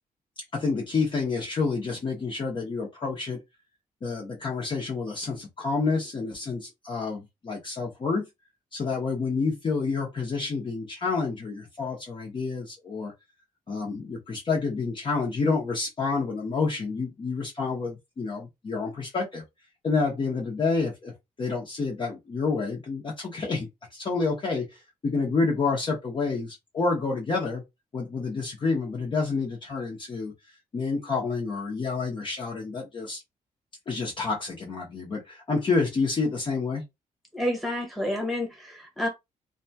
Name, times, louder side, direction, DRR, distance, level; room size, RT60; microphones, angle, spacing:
voice 1, 0.5-3.4 4.0-8.3 8.7-13.1 13.7-19.4 19.8-21.1 21.4-27.6 27.9-30.3 30.7-33.2 33.9-36.8, left 4 dB, 35° left, 0.8 m, -29 dB
voice 2, 37.3-39.1, left 1 dB, ahead, 1.2 m, -29 dB
2.7 x 2.2 x 2.7 m
cardioid pair, 140°, 14 cm